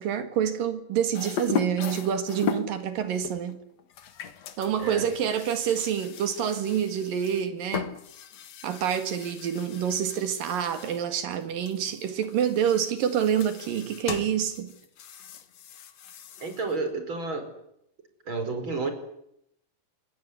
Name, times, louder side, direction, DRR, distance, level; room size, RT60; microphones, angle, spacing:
voice 1, 0.0-3.6 4.6-7.9 8.6-14.7, right 8 dB, 85° right, 3.6 m, -27 dB
sound 1, 1.1-2.8 3.2-11.1 11.3-16.8, left 7 dB, 55° left, 2.5 m, -37 dB
voice 2, 16.4-17.5 18.3-18.9, right 3 dB, 35° right, 5.6 m, -30 dB
26.0 x 20.5 x 9.8 m
omnidirectional pair, 3.9 m